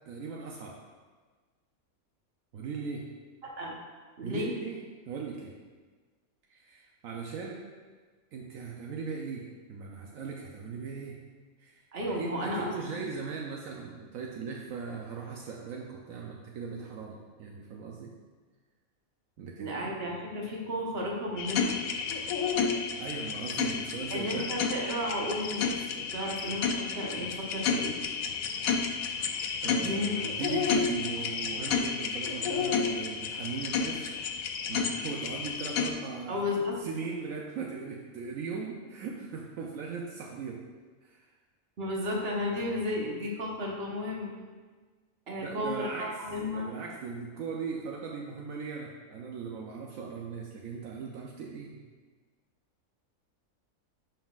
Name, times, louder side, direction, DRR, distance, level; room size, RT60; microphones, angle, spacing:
voice 1, 0.1-0.8 2.5-3.1 4.2-4.8 5.1-5.5 6.5-7.6 8.3-11.2 11.6-11.8 12.2-18.1 19.4-19.8 23.0-24.5 29.6-34.4 34.7-36.4 36.8-40.6 41.0-41.3 45.4-46.2 46.5-51.8, right 5 dB, 75° right, -1 dB, 1.1 m, -38 dB
voice 2, 3.4-3.8 4.2-4.5 11.9-12.7 19.6-21.8 24.1-27.9 29.7-30.1 36.3-36.8 41.8-44.3 45.3-46.7, left 1 dB, 50° right, -2 dB, 1.3 m, -33 dB
sound 1, 21.4-35.9, left 6 dB, 85° left, 1.1 m, -31 dB
10.0 x 5.6 x 2.4 m, 1.4 s
omnidirectional pair, 1.4 m